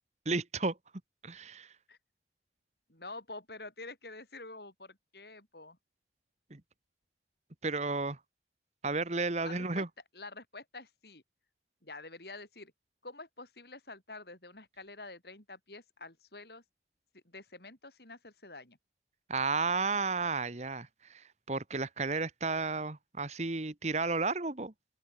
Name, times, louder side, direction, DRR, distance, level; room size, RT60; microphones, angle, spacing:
voice 1, 0.2-0.8 1.2-1.7 6.5-6.6 7.6-8.2 8.8-9.9 19.3-24.7, right 3 dB, 40° right, 1.3 m, -33 dB
voice 2, 2.9-5.8 9.4-9.9 10.1-11.2 11.8-12.7 13.0-16.6 17.1-18.8, left 3 dB, 65° left, 7.0 m, -48 dB
open air
head